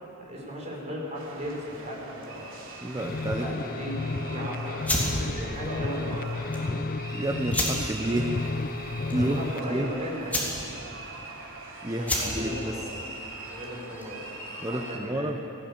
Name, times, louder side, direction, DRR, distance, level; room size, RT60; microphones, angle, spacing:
voice 1, 0.2-2.6 3.4-6.4 9.1-10.5 10.9-11.0 12.0-13.0 13.5-14.3 14.7-15.4, equal, 30° right, -3 dB, 5.6 m, -36 dB
sound 1, 1.1-15.0, right 2 dB, 60° right, 3.2 m, -42 dB
voice 2, 2.8-3.6 6.7-8.4 9.1-9.9 11.8-12.8 14.6-15.4, right 1 dB, 15° right, 5 dB, 0.8 m, -30 dB
sound 2, 3.0-9.7, left 3 dB, 40° left, 0.5 m, -32 dB
sound 3, 4.8-14.3, left 1 dB, 5° left, 3.6 m, -33 dB
19.0 x 16.0 x 8.9 m, 2.7 s
head